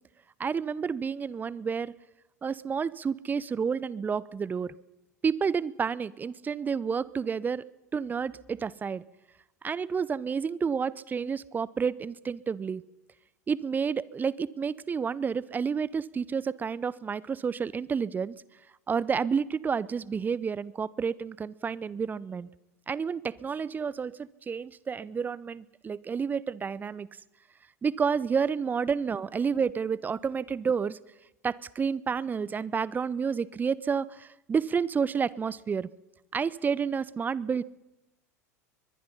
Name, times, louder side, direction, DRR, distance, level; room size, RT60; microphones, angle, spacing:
voice 1, 0.4-1.9 2.4-4.7 5.2-7.7 7.9-9.0 9.6-12.8 13.5-18.3 18.9-22.5 22.9-27.1 27.8-31.0 31.4-35.9 36.3-37.6, right 6 dB, 20° right, 22 dB, 0.7 m, -30 dB
23.5 x 21.5 x 5.6 m, 0.96 s
figure-of-eight pair, 80°, 9 cm